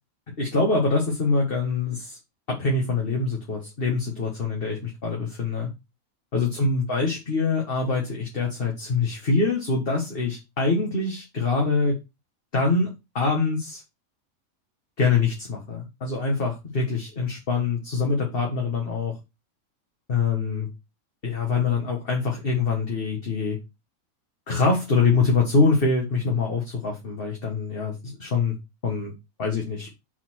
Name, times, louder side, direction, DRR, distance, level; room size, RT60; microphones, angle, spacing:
voice 1, 0.4-2.2 2.5-5.7 6.3-12.0 12.5-13.8 15.0-19.2 20.1-20.7 21.2-23.6 24.5-28.5 28.8-29.1 29.4-29.9, left 4 dB, 40° left, 0 dB, 1.7 m, -24 dB
6.5 x 4.1 x 4.6 m, 0.23 s
omnidirectional pair, 1.5 m